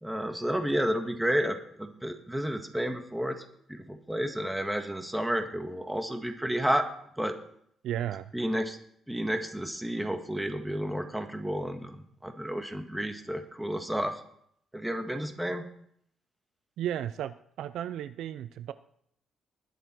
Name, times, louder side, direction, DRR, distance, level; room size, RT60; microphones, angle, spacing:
voice 1, 0.0-6.8 7.2-7.3 8.3-8.8 9.1-14.2 14.7-15.6, equal, 5° right, 6 dB, 1.7 m, -31 dB
voice 2, 7.8-8.3 16.8-18.7, right 11 dB, 80° right, 14 dB, 0.5 m, -34 dB
20.5 x 6.9 x 4.6 m, 0.69 s
cardioid pair, 90°, 0 cm